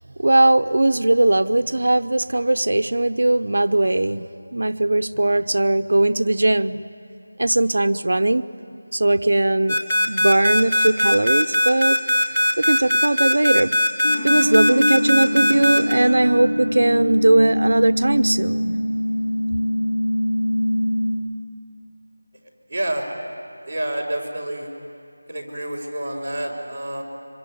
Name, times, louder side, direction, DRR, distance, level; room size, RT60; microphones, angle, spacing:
voice 1, 0.2-6.8 7.4-8.4 8.9-9.8 10.1-12.0 12.6-13.8 14.2-18.8, right 2 dB, 65° right, 12 dB, 0.7 m, -19 dB
sound 1, 9.7-15.9, left 1 dB, 5° left, 2.3 m, -19 dB
sound 2, 14.0-21.1, equal, 45° left, 7.6 m, -23 dB
voice 2, 22.7-23.1 23.6-24.7 25.3-27.0, right 1 dB, 15° right, -9 dB, 4.2 m, -28 dB
25.5 x 24.5 x 9.5 m, 2.5 s
figure-of-eight pair, 180°, 0 cm